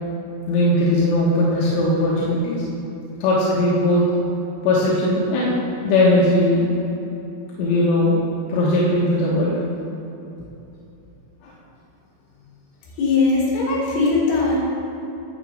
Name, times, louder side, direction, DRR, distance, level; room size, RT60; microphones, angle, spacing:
voice 1, 0.5-2.6 3.2-4.0 4.6-6.7 7.6-8.2 8.5-9.6 11.4-11.5, left 1 dB, 85° left, -7 dB, 4.3 m, -19 dB
voice 2, 13.0-14.6, left 3 dB, 70° left, -7 dB, 5.2 m, -19 dB
19.5 x 7.3 x 3.6 m, 2.9 s
omnidirectional pair, 5.9 m